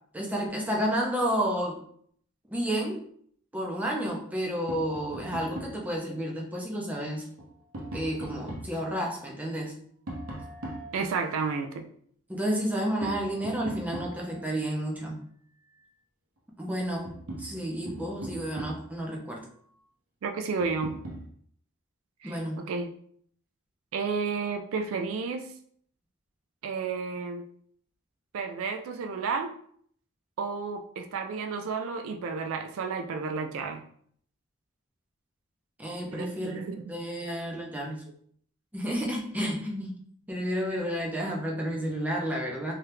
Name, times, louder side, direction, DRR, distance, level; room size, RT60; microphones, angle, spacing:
voice 1, 0.1-1.8 2.5-3.0 3.5-7.3 7.9-9.8 12.3-15.2 16.6-17.1 17.4-19.4 22.2-22.6 35.8-38.0 38.7-40.0 40.3-42.7, equal, 10° right, -2 dB, 0.5 m, -31 dB
Tap, 4.7-5.9 7.2-8.8 10.1-11.5 13.0-14.5 16.4-16.5 16.8-19.0 20.6-21.3, right 1 dB, 90° right, 0.8 m, -40 dB
voice 2, 10.9-11.8 20.2-20.9 22.2-22.9 23.9-25.5 26.6-27.4 28.3-29.5 30.4-33.8 36.1-36.8, right 5 dB, 75° right, 6 dB, 0.3 m, -32 dB
2.8 x 2.3 x 3.3 m, 0.62 s
head